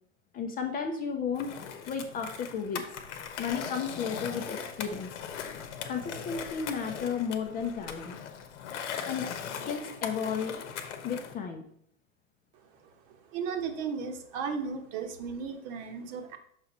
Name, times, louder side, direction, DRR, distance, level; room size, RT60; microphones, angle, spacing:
voice 1, 0.3-2.8 3.4-5.1 5.9-8.2 9.1-9.3 9.6-10.6 11.0-11.6, left 6 dB, 20° left, 5 dB, 0.6 m, -33 dB
Skateboard, 1.4-11.3, left 7 dB, 60° left, 1.0 m, -39 dB
voice 2, 12.8-16.4, right 6 dB, 45° right, 6 dB, 1.1 m, -35 dB
6.4 x 4.7 x 4.0 m, 0.65 s
hypercardioid pair, 105°, 40 cm